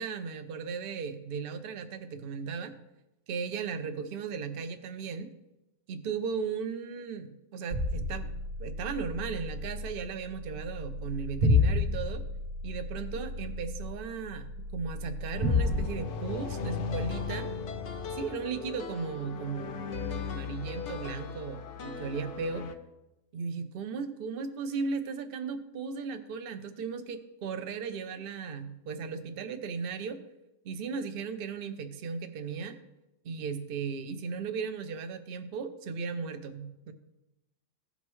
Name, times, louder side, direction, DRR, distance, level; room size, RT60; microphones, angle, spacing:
voice 1, 0.0-2.8 3.3-5.3 5.9-12.2 12.6-17.5 18.1-22.6 23.3-30.2 30.6-32.7 33.2-36.9, right 5 dB, 50° right, 7 dB, 0.8 m, -36 dB
sound 1, 7.7-15.9, left 2 dB, 90° right, 1.6 m, -31 dB
sound 2, 15.3-22.7, left 6 dB, 60° left, 0.9 m, -37 dB
16.0 x 5.4 x 3.1 m, 0.94 s
omnidirectional pair, 1.5 m